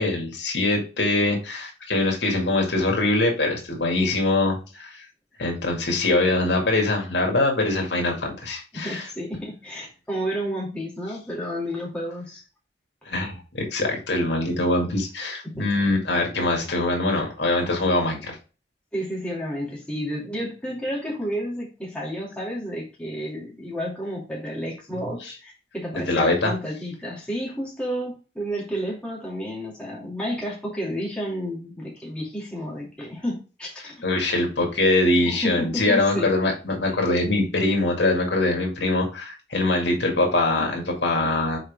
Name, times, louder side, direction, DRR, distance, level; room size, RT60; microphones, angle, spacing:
voice 1, 0.0-5.0 5.4-9.1 13.1-18.4 25.9-26.5 34.0-41.6, left 2 dB, 85° left, 1 dB, 2.2 m, -23 dB
voice 2, 8.7-12.4 15.4-15.7 18.9-34.0 35.2-36.3 40.6-40.7, equal, 5° left, -5 dB, 2.5 m, -31 dB
6.5 x 4.5 x 3.5 m, 0.33 s
head